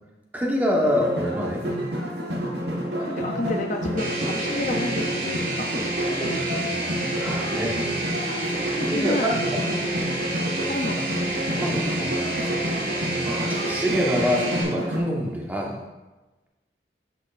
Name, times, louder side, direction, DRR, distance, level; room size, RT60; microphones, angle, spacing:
voice 1, 0.3-1.6 7.2-7.8 8.9-9.8 11.5-12.1 13.2-15.8, equal, 10° right, -2 dB, 1.0 m, -26 dB
sound 1, 0.8-15.0, equal, 70° right, 1.3 m, -29 dB
voice 2, 3.0-6.8 7.1-7.3 8.3-9.5 10.7-11.2, left 2 dB, 40° left, 4 dB, 0.4 m, -32 dB
sound 2, 4.0-14.6, right 2 dB, 45° right, 1.7 m, -30 dB
10.5 x 5.4 x 2.4 m, 1.1 s
head